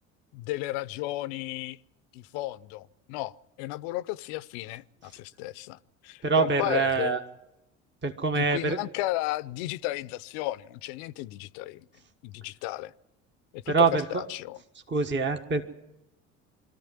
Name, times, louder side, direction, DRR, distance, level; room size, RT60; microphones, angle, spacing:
voice 1, 0.3-1.8 2.1-5.8 6.0-7.2 8.3-11.9 12.2-12.9 13.5-14.6, left 17 dB, 70° left, 0.7 m, -34 dB
voice 2, 6.2-7.2 8.0-8.8 13.7-14.2 14.9-15.6, right 4 dB, 30° right, 1.6 m, -25 dB
22.5 x 14.0 x 9.6 m
hypercardioid pair, 65°, 37 cm